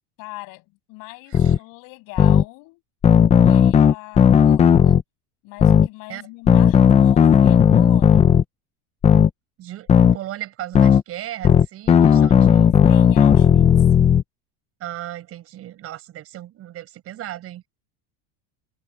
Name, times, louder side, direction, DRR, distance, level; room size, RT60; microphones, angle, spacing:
voice 1, 0.2-2.8 3.3-5.0 5.4-8.3 12.0-13.9, left 24 dB, 50° left, 8.0 m, -40 dB
sound 1, 1.3-1.6 2.2-2.4 3.0-5.0 5.6-5.9 6.5-8.4 9.0-9.3 9.9-10.2 10.7-11.0 11.4-14.2, left 8 dB, 15° left, 0.6 m, -14 dB
voice 2, 9.6-12.8 14.8-17.6, right 13 dB, 35° right, 6.4 m, -36 dB
cardioid pair, 175°, 41 cm